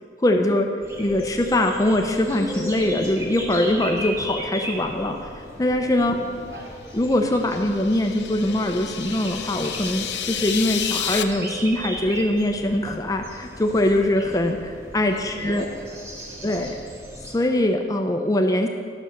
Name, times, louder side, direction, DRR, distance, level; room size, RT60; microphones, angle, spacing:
voice 1, 0.2-0.7 1.0-5.3 5.6-6.2 6.9-15.7 16.4-16.8 17.3-18.7, left 1 dB, 20° left, 4 dB, 0.6 m, -22 dB
sound 1, 0.8-17.4, equal, 15° right, 1.2 m, -36 dB
voice 2, 6.1-6.8 15.1-16.6, equal, 80° right, -1 dB, 2.0 m, -42 dB
sound 2, 7.1-11.2, left 11 dB, 80° left, 0.5 m, -31 dB
12.0 x 6.2 x 6.7 m, 2.2 s
head